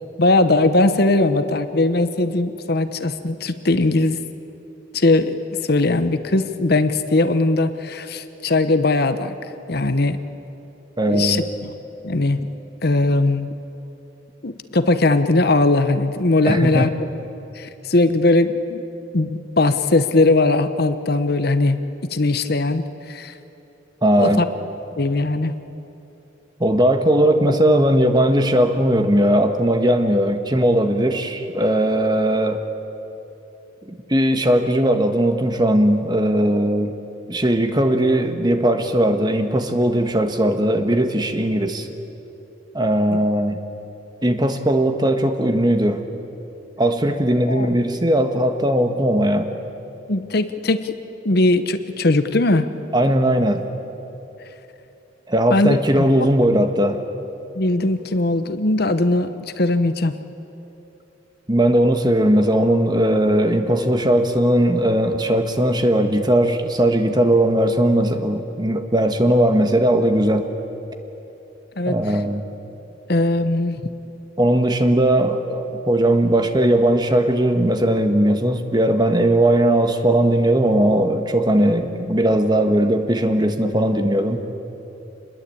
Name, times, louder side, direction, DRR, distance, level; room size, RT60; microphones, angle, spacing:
voice 1, 0.2-4.2 4.9-9.3 9.7-10.2 11.1-11.4 12.0-12.4 12.8-13.5 14.4-16.9 17.5-18.8 19.1-21.8 22.1-23.3 24.1-24.5 25.0-25.5 47.4-47.7 50.1-50.9 51.2-52.7 55.5-55.8 56.5-56.6 57.5-60.2 71.8-72.0 73.1-73.8, left 2 dB, 55° left, 10 dB, 1.0 m, -19 dB
voice 2, 11.0-11.4 16.5-16.9 24.0-24.4 26.6-32.6 33.9-36.9 37.3-41.9 42.7-43.6 44.2-46.0 46.8-49.5 52.9-53.7 55.3-57.0 61.5-70.4 71.8-72.4 74.4-84.5, right 1 dB, 20° right, 7 dB, 1.5 m, -18 dB
27.0 x 21.0 x 8.6 m, 3.0 s
head